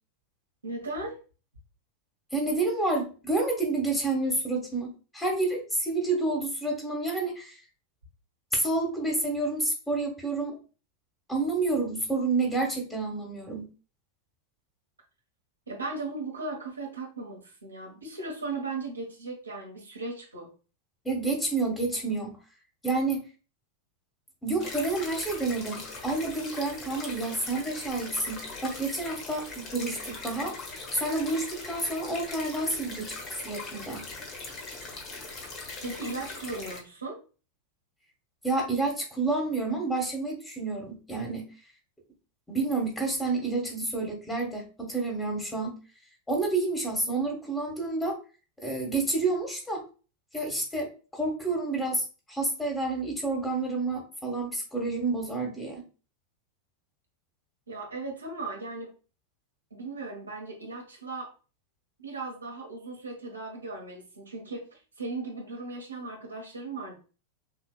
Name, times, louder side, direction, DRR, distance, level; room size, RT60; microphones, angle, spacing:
voice 1, 0.6-1.2 15.7-20.5 35.8-37.2 57.7-58.9 59.7-61.3 62.0-67.0, right 3 dB, 75° right, -1 dB, 1.4 m, -37 dB
voice 2, 2.3-7.6 8.5-10.6 11.3-13.7 21.0-22.3 22.8-23.2 24.4-30.5 30.9-33.1 33.4-34.0 38.4-41.4 42.5-45.8 46.3-48.2 48.6-49.8 50.3-55.8, right 3 dB, 10° left, 1 dB, 1.6 m, -29 dB
sound 1, 24.6-36.8, left 3 dB, 35° left, 1.1 m, -40 dB
5.9 x 2.8 x 2.4 m, 0.35 s
figure-of-eight pair, 90°, 0 cm